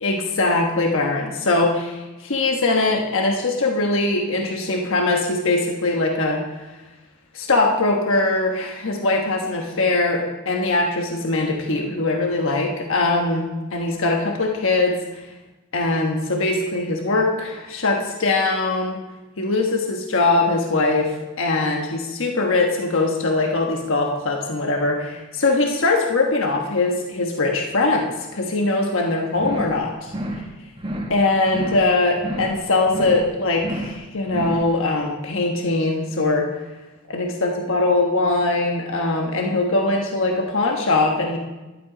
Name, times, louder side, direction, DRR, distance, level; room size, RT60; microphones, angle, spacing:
voice 1, 0.0-6.4 7.3-14.9 15.7-19.0 19.4-21.1 21.4-30.1 31.1-36.5 37.1-41.4, left 2 dB, 65° left, 1 dB, 1.3 m, -21 dB
sound 1, 29.4-29.8 30.1-30.5 30.8-31.2 31.5-31.9 32.2-32.6 32.9-33.3 33.6-34.0 34.3-34.7, right 1 dB, 25° right, 1.2 m, -30 dB
11.0 x 11.0 x 5.0 m, 1.1 s
head